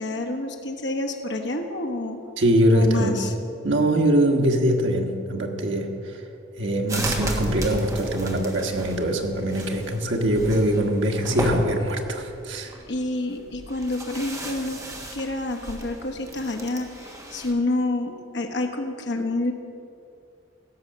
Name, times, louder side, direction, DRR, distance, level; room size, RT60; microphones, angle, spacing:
voice 1, 0.0-2.2 2.7-3.3 12.9-14.8 15.1-19.5, left 2 dB, 65° left, 3 dB, 1.0 m, -28 dB
voice 2, 2.4-3.1 3.6-6.2 6.6-12.8, right 1 dB, 85° right, 2 dB, 1.4 m, -22 dB
sound 1, 6.9-17.5, right 1 dB, 15° right, 1.3 m, -34 dB
16.0 x 6.3 x 6.6 m, 2.6 s
head